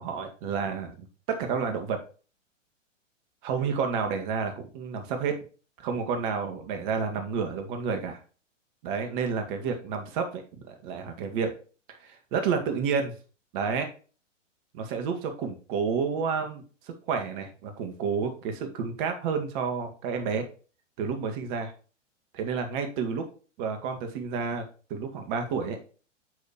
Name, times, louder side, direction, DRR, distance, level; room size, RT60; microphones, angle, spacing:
voice 1, 0.0-2.0 3.4-5.4 5.8-8.2 8.8-11.5 12.0-13.1 13.5-13.9 14.7-20.5 21.0-21.7 22.4-23.3 23.6-24.6 24.9-25.8, right 5 dB, 40° right, 6 dB, 2.0 m, -30 dB
9.7 x 6.4 x 3.1 m, 0.36 s
figure-of-eight pair, 110°, 38 cm